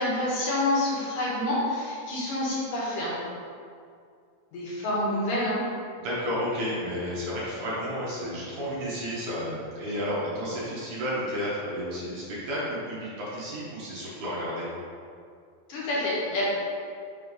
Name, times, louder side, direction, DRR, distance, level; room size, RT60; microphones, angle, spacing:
voice 1, 0.0-3.1 4.5-5.6 15.7-16.4, left 1 dB, 65° left, -7 dB, 2.7 m, -27 dB
voice 2, 6.0-14.7, equal, 65° right, -8 dB, 2.4 m, -32 dB
6.2 x 3.2 x 5.3 m, 2.3 s
omnidirectional pair, 4.3 m